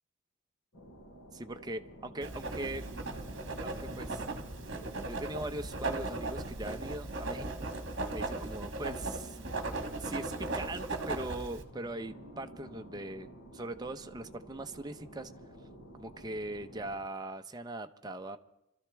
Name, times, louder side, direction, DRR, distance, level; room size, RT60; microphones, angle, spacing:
sound 1, 0.7-17.0, right 1 dB, 80° left, 5.7 m, -51 dB
voice 1, 1.3-2.8 3.6-4.2 5.1-7.7 8.1-9.4 10.0-15.3 15.9-18.4, right 2 dB, 20° right, 7 dB, 0.6 m, -40 dB
Writing, 2.2-11.6, right 2 dB, 55° right, 1.3 m, -37 dB
27.0 x 13.0 x 3.4 m, 0.87 s
head